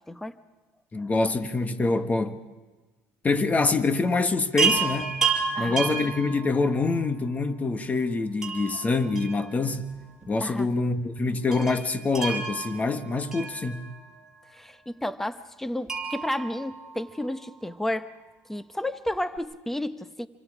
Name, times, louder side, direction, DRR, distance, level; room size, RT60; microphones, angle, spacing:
voice 1, 0.9-2.4 3.2-5.1 5.6-9.9 10.3-13.8, left 3 dB, 25° left, 1.6 m, -25 dB
Chime, 4.6-7.0 8.4-10.0 10.2-10.3 11.5-14.2 15.9-17.5 19.1-19.2 19.4-19.5, right 5 dB, 10° right, 5.7 m, -31 dB
voice 2, 5.5-6.0 10.4-10.7 14.6-18.1 18.5-20.3, left 1 dB, 5° left, 0.9 m, -32 dB
27.5 x 25.0 x 5.0 m
supercardioid pair, 100°, 6 cm